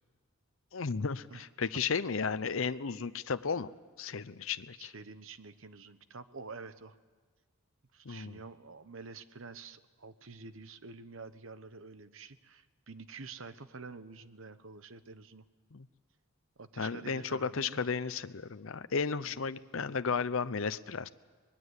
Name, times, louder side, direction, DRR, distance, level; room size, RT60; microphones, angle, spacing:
voice 1, 0.7-3.7 4.0-4.9 8.0-8.4 15.7-15.9 16.8-21.1, left 5 dB, 65° left, 13 dB, 0.6 m, -34 dB
voice 2, 4.8-7.0 7.9-15.4 16.6-17.8 19.2-19.4, right 4 dB, 65° right, 12 dB, 1.0 m, -48 dB
24.0 x 20.5 x 8.2 m, 1.4 s
head